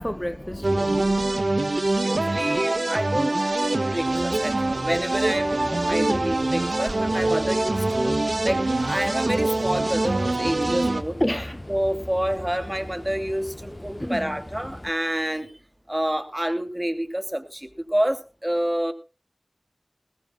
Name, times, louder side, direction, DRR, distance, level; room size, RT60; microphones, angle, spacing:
voice 1, 0.0-1.7 6.0-6.3 11.2-11.6 14.0-14.4, equal, 15° left, 0.7 m, -30 dB
sound 1, 0.6-11.0, right 2 dB, 75° right, 1.8 m, -24 dB
voice 2, 2.0-8.1 8.4-11.2 11.7-15.5 15.9-18.9, right 1 dB, 15° right, 2.8 m, -28 dB
sound 2, 4.0-14.9, left 1 dB, 30° left, 1.2 m, -39 dB
20.0 x 17.0 x 2.3 m
wide cardioid pair, 45°, 0 cm